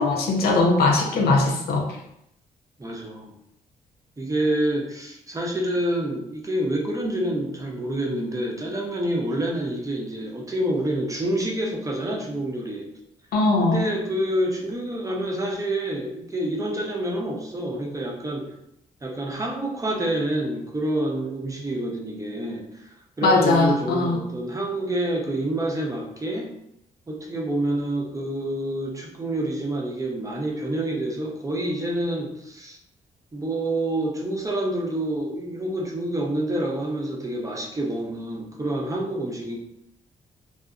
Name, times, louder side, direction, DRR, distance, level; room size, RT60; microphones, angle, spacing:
voice 1, 0.0-1.9 13.3-13.8 23.2-24.2, left 3 dB, 80° left, 1 dB, 0.5 m, -20 dB
voice 2, 2.8-3.3 4.2-12.9 13.6-18.5 19.0-22.6 23.2-26.5 27.1-32.8 33.3-39.6, right 1 dB, 20° right, -1 dB, 0.6 m, -27 dB
2.6 x 2.0 x 2.4 m, 0.78 s
cardioid pair, 65°, 16 cm